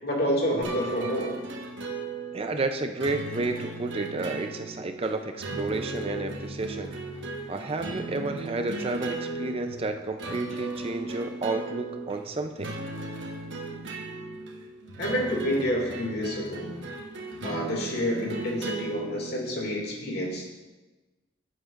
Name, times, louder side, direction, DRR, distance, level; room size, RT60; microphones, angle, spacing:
voice 1, 0.0-1.4 15.0-16.7 17.4-20.5, equal, 55° left, -1 dB, 2.2 m, -29 dB
sound 1, 0.6-19.8, right 2 dB, 75° right, 1.2 m, -36 dB
voice 2, 2.3-6.9 7.5-12.7, right 3 dB, 30° right, 6 dB, 0.5 m, -31 dB
14.5 x 8.0 x 2.5 m, 1.2 s
head